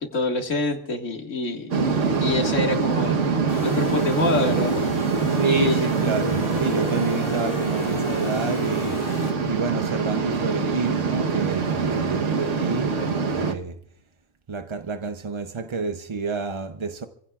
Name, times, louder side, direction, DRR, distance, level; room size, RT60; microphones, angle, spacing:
voice 1, 0.1-3.2 3.6-4.7 5.4-5.8, left 3 dB, 70° left, 2.2 m, -26 dB
sound 1, 1.7-13.5, right 5 dB, 70° right, 1.4 m, -24 dB
sound 2, 3.5-9.3, left 1 dB, 30° left, 2.9 m, -33 dB
voice 2, 5.3-9.0 9.4-13.8 14.5-17.1, right 4 dB, 35° right, 0.5 m, -29 dB
28.5 x 16.0 x 2.4 m
omnidirectional pair, 1.3 m